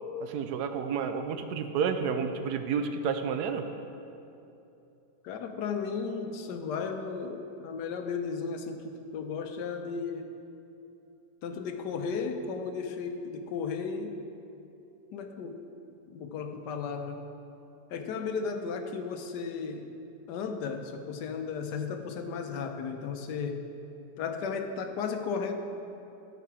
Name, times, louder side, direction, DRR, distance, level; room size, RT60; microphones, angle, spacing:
voice 1, 0.2-3.7, right 6 dB, 80° right, 7 dB, 1.1 m, -30 dB
voice 2, 5.2-10.3 11.4-14.1 15.1-15.6 16.1-17.3 17.9-19.9 20.3-23.7 24.2-25.5, left 5 dB, 85° left, 6 dB, 1.3 m, -34 dB
12.5 x 4.8 x 4.8 m, 2.8 s
omnidirectional pair, 1.8 m